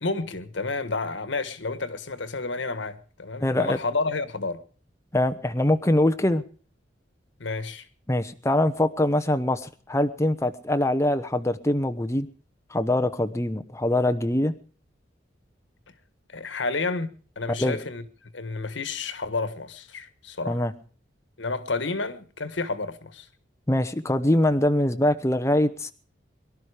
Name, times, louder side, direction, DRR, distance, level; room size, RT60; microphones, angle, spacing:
voice 1, 0.0-4.6 7.4-7.9 16.3-20.6 21.4-23.3, left 3 dB, 80° left, 1.5 m, -30 dB
voice 2, 3.4-3.8 5.1-6.4 8.1-12.3 12.7-14.5 17.6-17.8 20.5-20.7 23.7-25.9, left 1 dB, 15° left, 0.9 m, -23 dB
23.0 x 12.0 x 5.0 m
head